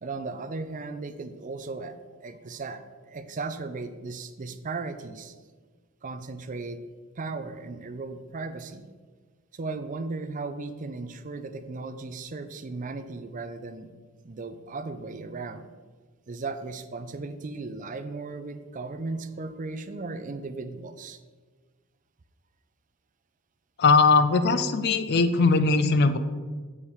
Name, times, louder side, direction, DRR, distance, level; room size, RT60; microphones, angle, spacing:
voice 1, 0.0-5.4 6.0-6.8 7.2-8.9 9.5-13.9 14.2-15.7 16.3-21.2, right 3 dB, 35° right, 10 dB, 0.5 m, -36 dB
voice 2, 23.8-26.2, left 4 dB, 50° left, 10 dB, 0.5 m, -20 dB
7.1 x 4.9 x 5.5 m, 1.4 s
head